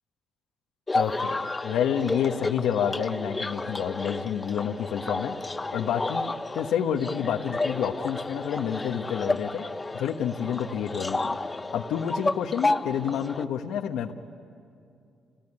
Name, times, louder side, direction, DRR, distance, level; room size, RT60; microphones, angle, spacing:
voice 1, 0.9-5.3 5.7-9.6 9.9-11.4 11.7-14.1, left 8 dB, 85° left, 4 dB, 1.1 m, -29 dB
sound 1, 0.9-13.5, left 2 dB, 20° left, 0.7 m, -31 dB
28.5 x 18.5 x 9.9 m, 2.5 s
cardioid pair, 90°, 0 cm